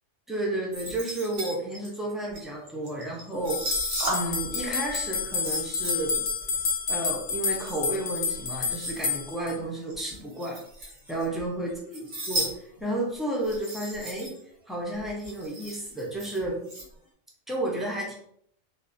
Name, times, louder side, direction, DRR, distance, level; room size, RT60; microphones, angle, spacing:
voice 1, 0.3-3.6 4.1-6.2 6.9-10.6 11.1-12.5 12.8-14.3 14.7-16.6 17.5-18.1, right 1 dB, ahead, -3 dB, 0.3 m, -32 dB
sound 1, 0.7-4.6 4.9-9.1 9.9-11.4 11.7-12.5 12.8-12.9 13.3-14.4 14.7-14.8 15.0-16.8, right 1 dB, 80° right, 1.3 m, -36 dB
sound 2, 3.5-9.5, left 5 dB, 80° left, 1.0 m, -29 dB
3.8 x 2.2 x 2.5 m, 0.67 s
omnidirectional pair, 1.2 m